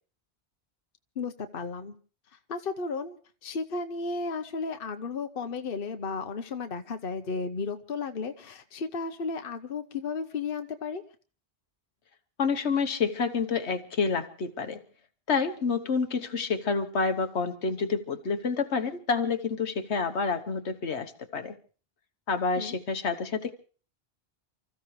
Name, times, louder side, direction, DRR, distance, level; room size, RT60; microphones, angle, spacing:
voice 1, 1.2-2.0 2.5-3.2 3.4-11.0 22.6-22.8, left 4 dB, 55° left, 7 dB, 1.2 m, -34 dB
voice 2, 12.4-14.8 15.3-21.5 22.3-23.5, left 5 dB, 80° left, 7 dB, 1.4 m, -28 dB
29.5 x 14.5 x 3.2 m, 0.40 s
omnidirectional pair, 1.1 m